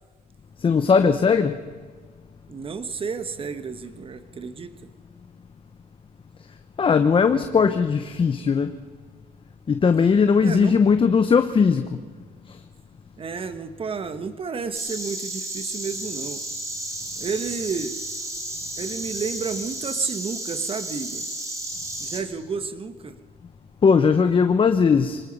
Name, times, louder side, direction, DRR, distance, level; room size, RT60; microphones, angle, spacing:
voice 1, 0.6-1.5 6.8-8.7 9.7-11.9 23.8-25.2, left 5 dB, 30° left, 9 dB, 1.0 m, -18 dB
voice 2, 2.5-4.7 10.4-10.8 13.2-16.4 17.2-18.0 18.8-21.2 22.0-23.2, right 5 dB, 35° right, 11 dB, 1.5 m, -31 dB
Insect, 14.7-22.2, right 1 dB, 20° right, 4.3 m, -33 dB
25.0 x 19.0 x 5.5 m, 1.5 s
cardioid pair, 110°, 17 cm